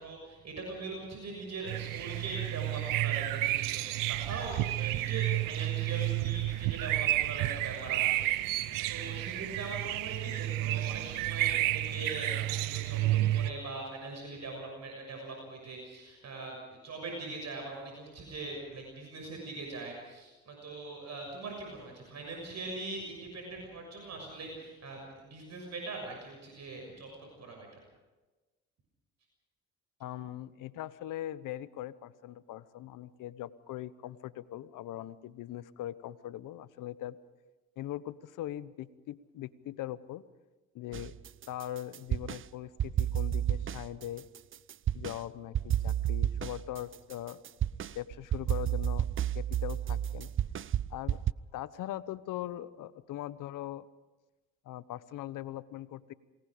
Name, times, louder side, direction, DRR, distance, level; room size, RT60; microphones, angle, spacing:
voice 1, 0.0-16.6 16.8-27.1 27.4-27.7, right 3 dB, 55° right, 1 dB, 6.6 m, -41 dB
sound 1, 1.7-13.5, right 16 dB, 85° right, 0.9 m, -31 dB
voice 2, 30.0-37.2 37.8-40.2 40.7-41.1 41.5-44.3 44.9-47.4 47.9-49.1 49.3-50.3 50.9-51.2 51.5-53.9 54.6-56.1, left 13 dB, 75° left, 16 dB, 1.1 m, -41 dB
sound 2, 40.9-42.4 42.8-45.2 45.5-51.3, right 10 dB, 40° right, 0.6 m, -31 dB
28.5 x 19.5 x 5.1 m, 1.2 s
supercardioid pair, 75°, 32 cm